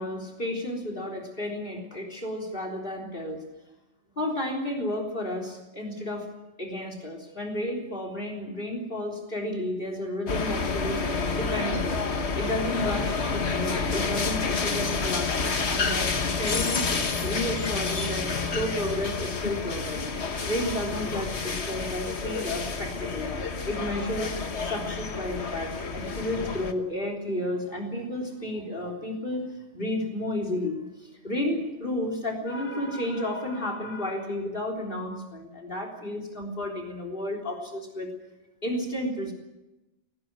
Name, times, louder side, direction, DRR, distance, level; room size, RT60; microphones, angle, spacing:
voice 1, 0.0-3.4 4.2-6.3 6.6-11.0 11.3-12.0 12.3-16.9 17.2-23.3 23.7-24.3 24.6-29.4 29.7-38.1 38.6-39.3, left 1 dB, 45° left, 3 dB, 3.9 m, -32 dB
sound 1, 10.3-26.7, left 4 dB, 65° left, 1.7 m, -29 dB
19.5 x 18.5 x 9.0 m, 0.99 s
omnidirectional pair, 1.2 m